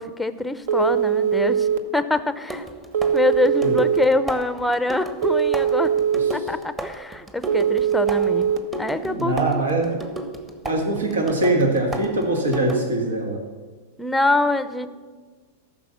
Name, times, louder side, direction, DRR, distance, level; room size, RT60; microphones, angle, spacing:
voice 1, 0.0-1.7 1.9-2.7 3.1-5.9 6.3-9.6 14.0-14.9, left 2 dB, 5° left, 12 dB, 0.7 m, -24 dB
Telephone, 0.7-1.8 2.9-4.0 5.2-6.3 7.5-8.6, right 8 dB, 60° right, 1.0 m, -21 dB
sound 1, 0.8-1.0 2.5-13.1, right 2 dB, 15° right, 1.2 m, -35 dB
voice 2, 9.0-10.0 10.6-13.4, right 2 dB, 75° right, 1 dB, 1.8 m, -22 dB
14.0 x 6.0 x 7.0 m, 1.4 s
figure-of-eight pair, 95°, 0 cm